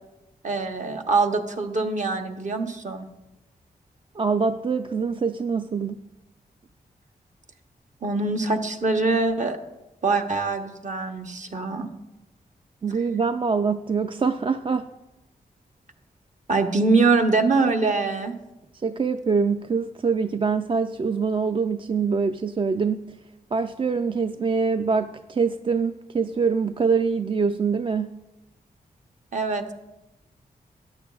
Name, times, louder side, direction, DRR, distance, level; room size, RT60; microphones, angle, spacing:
voice 1, 0.4-3.1 8.0-9.6 10.0-11.9 16.5-18.3 29.3-29.7, right 3 dB, 50° right, 4 dB, 1.0 m, -23 dB
voice 2, 4.2-6.0 12.8-14.9 18.7-23.1 23.5-28.1, right 5 dB, 35° right, 9 dB, 0.3 m, -24 dB
13.5 x 9.3 x 2.4 m, 0.99 s
cardioid pair, 65°, 16 cm